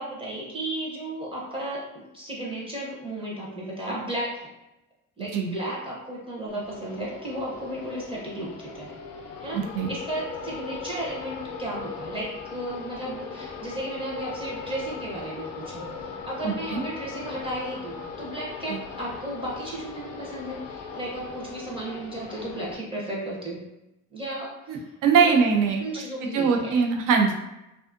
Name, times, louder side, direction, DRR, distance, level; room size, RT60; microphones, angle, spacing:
voice 1, 0.0-1.8 2.1-4.5 5.2-8.9 9.4-9.6 9.9-23.6 24.1-24.9 25.2-25.4 25.8-26.8, right 1 dB, 15° right, -5 dB, 0.6 m, -34 dB
sound 1, 6.5-22.7, left 5 dB, 55° left, 0.4 m, -39 dB
voice 2, 9.5-9.9 16.4-16.8 18.7-18.8 24.7-25.8 26.2-27.4, right 5 dB, 80° right, 2 dB, 0.6 m, -22 dB
2.5 x 2.4 x 2.4 m, 0.92 s
cardioid pair, 135°, 32 cm